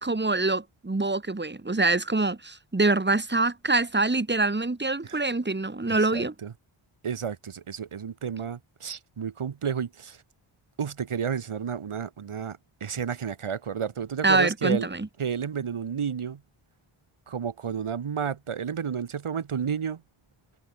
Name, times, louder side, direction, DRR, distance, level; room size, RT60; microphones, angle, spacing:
voice 1, 0.0-6.3 14.2-15.1, right 3 dB, 20° right, 3.5 m, -25 dB
voice 2, 5.9-6.5 7.0-10.2 10.8-14.9 15.2-16.4 17.3-20.0, right 7 dB, 75° right, 3.8 m, -31 dB
wide cardioid pair, 85°, 50 cm